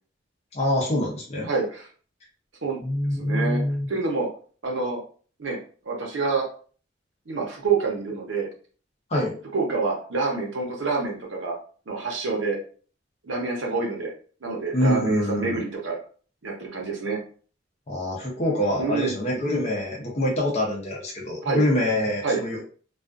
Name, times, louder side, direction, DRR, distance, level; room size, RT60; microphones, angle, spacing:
voice 1, 0.5-1.5 2.8-3.9 9.1-9.3 14.7-15.6 17.9-22.6, left 1 dB, 35° left, -3 dB, 0.6 m, -25 dB
voice 2, 1.5-1.9 2.6-2.8 3.2-3.6 3.9-4.3 4.6-5.0 5.4-5.6 5.8-6.5 7.3-8.5 9.5-11.6 11.9-12.6 13.2-14.1 14.4-16.0 16.4-17.2 18.8-19.1 21.4-21.6 22.2-22.4, right 4 dB, 75° right, -1 dB, 0.8 m, -27 dB
2.4 x 2.3 x 2.4 m, 0.42 s
head